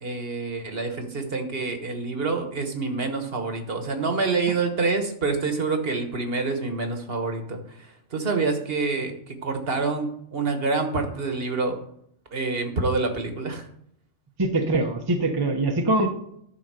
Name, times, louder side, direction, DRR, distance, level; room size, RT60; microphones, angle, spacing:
voice 1, 0.0-11.8 12.3-13.7, right 3 dB, 50° right, 5 dB, 1.4 m, -27 dB
voice 2, 14.4-16.1, right 2 dB, 20° right, 3 dB, 0.8 m, -23 dB
11.5 x 4.1 x 6.7 m, 0.71 s
omnidirectional pair, 1.4 m